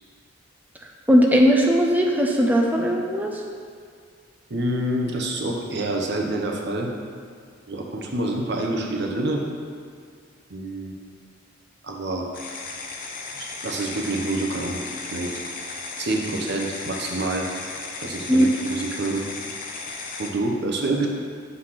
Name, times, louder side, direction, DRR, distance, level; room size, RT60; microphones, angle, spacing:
voice 1, 1.1-3.4 18.3-18.5, equal, 10° right, 0 dB, 0.6 m, -18 dB
voice 2, 4.5-6.9 7.7-9.4 10.5-10.9 11.8-12.3 13.3-14.8 15.1-15.3 16.0-17.5 18.0-19.2 20.2-21.1, right 2 dB, 55° right, 1 dB, 0.8 m, -27 dB
sound 1, 12.3-20.3, left 3 dB, 45° left, 0.7 m, -35 dB
6.5 x 4.1 x 5.7 m, 2.1 s
head